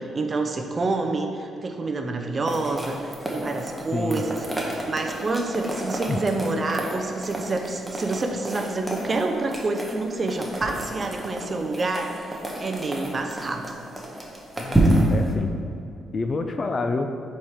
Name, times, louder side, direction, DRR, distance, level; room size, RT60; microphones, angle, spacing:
voice 1, 0.0-4.4 4.9-13.7, right 3 dB, 30° right, 4 dB, 0.5 m, -28 dB
sound 1, 2.5-15.3, right 1 dB, 5° right, 0.8 m, -29 dB
voice 2, 3.9-4.2 6.1-6.2 14.6-15.5 16.1-17.1, left 3 dB, 35° left, 6 dB, 0.3 m, -27 dB
4.5 x 4.2 x 4.9 m, 2.4 s
cardioid pair, 125°, 0 cm